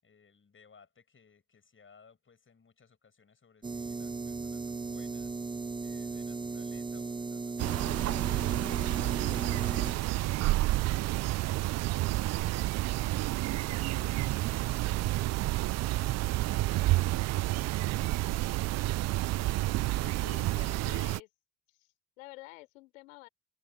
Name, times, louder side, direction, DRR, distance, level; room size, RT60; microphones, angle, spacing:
voice 1, 0.0-5.4 5.8-19.6, left 5 dB, 30° left, 6.4 m, -61 dB
sound 1, 3.6-9.9, right 4 dB, 10° right, 0.7 m, -37 dB
sound 2, 7.6-21.2, right 18 dB, 45° right, 0.5 m, -30 dB
voice 2, 13.5-14.1 20.0-21.3 21.7-23.3, left 22 dB, 75° left, 3.9 m, -50 dB
hypercardioid pair, 55°, 40 cm